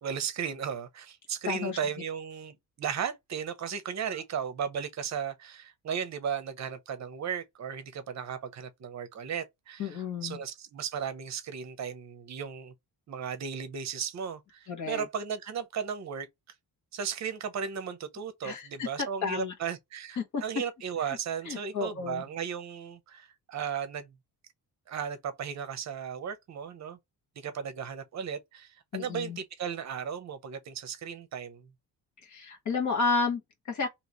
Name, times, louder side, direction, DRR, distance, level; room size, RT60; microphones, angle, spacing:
voice 1, 0.0-12.7 13.1-16.3 16.9-24.1 24.9-27.0 27.4-31.7, right 7 dB, 45° right, 0.8 m, -35 dB
voice 2, 1.5-1.8 9.8-10.4 14.7-15.1 18.4-19.5 20.2-20.4 21.4-22.2 28.9-29.4 32.2-33.9, left 4 dB, 50° left, 1.4 m, -31 dB
3.1 x 2.9 x 3.8 m
cardioid pair, 175°, 38 cm